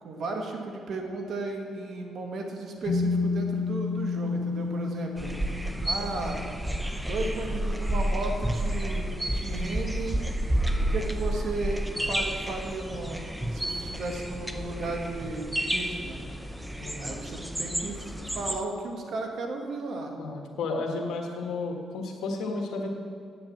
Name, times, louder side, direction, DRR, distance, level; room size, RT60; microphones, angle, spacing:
voice 1, 0.0-5.3 5.8-6.5 7.1-10.2 10.8-16.2 17.0-18.0 18.3-20.1 20.9-21.1, right 2 dB, 65° right, 3 dB, 1.5 m, -35 dB
sound 1, 2.8-6.7, left 4 dB, 60° left, 1.0 m, -30 dB
sound 2, 5.2-18.6, right 1 dB, 5° right, 0.6 m, -30 dB
voice 2, 16.8-17.1 20.2-22.9, left 3 dB, 75° left, 2 dB, 1.5 m, -32 dB
8.5 x 7.7 x 7.3 m, 2.3 s
cardioid pair, 90°, 0 cm